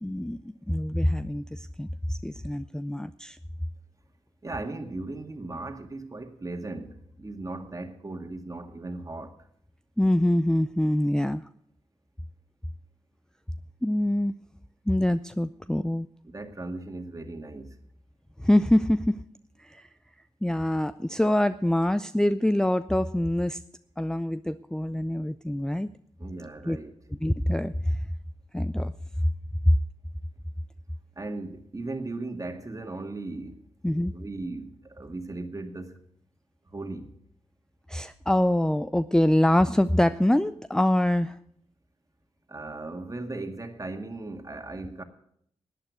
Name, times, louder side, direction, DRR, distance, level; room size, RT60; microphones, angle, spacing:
voice 1, 0.0-3.4 10.0-11.4 13.8-14.3 14.9-16.1 18.4-19.2 19.6-19.9 20.4-23.6 24.0-25.9 26.7-26.8 27.2-28.0 28.5-28.9 29.7-29.8 33.8-34.1 37.9-41.4, left 1 dB, 5° left, 0.5 m, -24 dB
voice 2, 4.4-9.4 16.2-17.8 26.2-26.9 31.2-33.6 34.1-36.0 36.7-37.1 42.5-45.0, right 2 dB, 30° right, 2.0 m, -37 dB
11.5 x 9.0 x 8.2 m
supercardioid pair, 45°, 12 cm